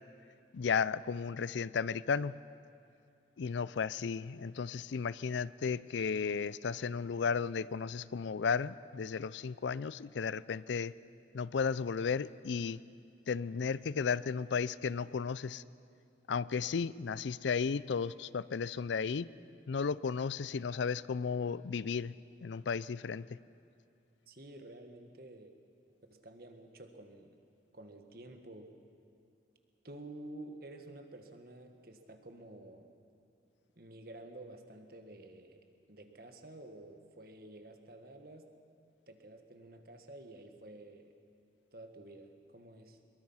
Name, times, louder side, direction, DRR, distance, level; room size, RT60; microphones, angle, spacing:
voice 1, 0.5-2.4 3.4-10.9 11.3-12.8 13.3-15.6 16.3-19.3 19.7-22.1 22.4-23.4, left 6 dB, 75° left, 19 dB, 0.4 m, -34 dB
voice 2, 24.3-25.5 26.1-27.4 27.7-28.7 29.8-32.9 33.8-38.5 39.1-41.1 41.7-43.0, right 1 dB, 50° right, 6 dB, 1.6 m, -51 dB
23.5 x 22.0 x 5.7 m, 2.6 s
head